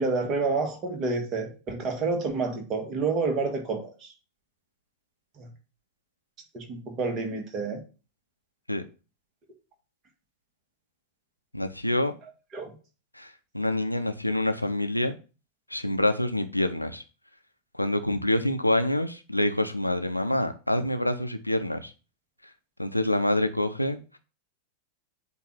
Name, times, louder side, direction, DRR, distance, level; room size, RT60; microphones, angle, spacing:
voice 1, 0.0-3.9 5.4-5.5 6.5-7.8 12.5-12.7, right 3 dB, 30° right, 1.7 m, -29 dB
voice 2, 11.5-12.1 13.2-15.1 15.7-17.0 17.7-21.9 22.8-24.0, left 1 dB, 90° left, 0.7 m, -26 dB
7.8 x 2.7 x 6.0 m
figure-of-eight pair, 90°, 0 cm